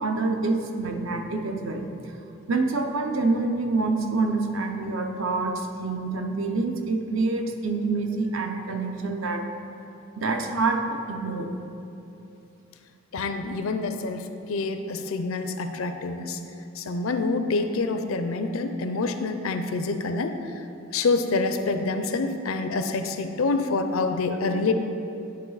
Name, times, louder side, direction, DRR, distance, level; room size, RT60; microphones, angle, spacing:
voice 1, 0.0-2.1 2.5-9.4 10.2-11.5, right 3 dB, 70° right, 4 dB, 0.7 m, -27 dB
voice 2, 13.1-16.4 16.8-20.5 20.9-24.7, left 3 dB, 80° left, 8 dB, 0.5 m, -27 dB
10.5 x 4.9 x 4.0 m, 2.9 s
head